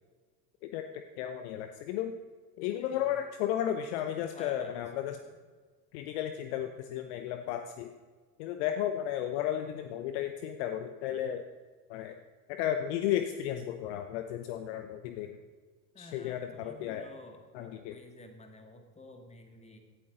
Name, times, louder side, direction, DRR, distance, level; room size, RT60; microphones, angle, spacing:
voice 1, 0.7-2.2 2.6-5.2 5.9-7.9 8.4-11.4 11.9-12.2 12.5-15.4 16.0-17.1 17.5-17.9, left 10 dB, 45° left, 8 dB, 0.9 m, -34 dB
voice 2, 2.7-3.2 4.1-4.8 5.1-5.4 15.9-19.8, left 2 dB, 15° left, 5 dB, 2.0 m, -51 dB
17.0 x 12.5 x 3.9 m, 1.5 s
figure-of-eight pair, 80°, 49 cm